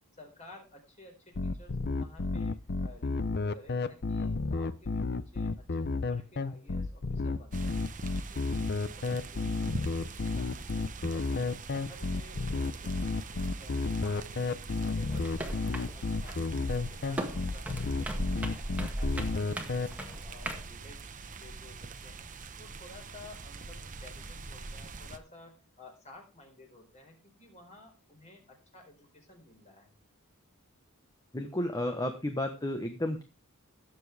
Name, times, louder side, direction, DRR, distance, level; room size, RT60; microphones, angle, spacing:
voice 1, 0.2-7.9 8.3-10.9 11.1-16.5 16.8-18.6 18.9-21.1 21.4-22.3 22.6-30.0, left 2 dB, 35° left, 2 dB, 4.6 m, -54 dB
sound 1, 1.3-19.9, left 3 dB, 50° left, 0.7 m, -31 dB
sound 2, 7.5-25.2, right 4 dB, 35° right, 0.9 m, -44 dB
sound 3, 15.1-20.7, right 1 dB, 5° right, 1.8 m, -38 dB
voice 2, 31.3-33.2, left 1 dB, 15° left, 5 dB, 1.1 m, -32 dB
17.5 x 7.3 x 3.4 m, 0.29 s
head